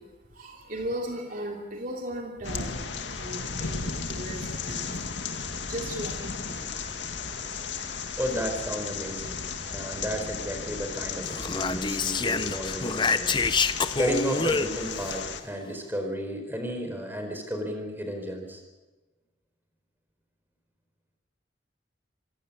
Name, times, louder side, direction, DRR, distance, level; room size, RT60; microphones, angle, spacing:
voice 1, 0.0-7.0 7.5-8.0, right 1 dB, 50° right, 1 dB, 2.8 m, -38 dB
sound 1, 2.4-15.4, left 5 dB, 80° left, 2.1 m, -35 dB
voice 2, 8.2-13.4 13.9-18.6, equal, 10° right, 4 dB, 4.6 m, -33 dB
Speech, 11.2-15.1, left 4 dB, 25° left, 0.8 m, -27 dB
26.0 x 16.5 x 8.7 m, 1.2 s
head